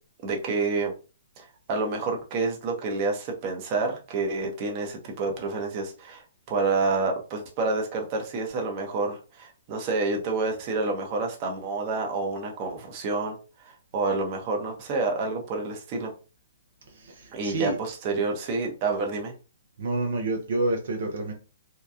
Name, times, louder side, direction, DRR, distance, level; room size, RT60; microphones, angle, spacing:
voice 1, 0.2-0.9 1.4-13.4 13.6-16.1 17.3-19.3, right 3 dB, 40° right, 0.7 m, -28 dB
voice 2, 16.9-17.8 19.8-21.3, right 2 dB, 70° right, 0.6 m, -28 dB
2.8 x 2.3 x 2.3 m
hypercardioid pair, 135°, 0 cm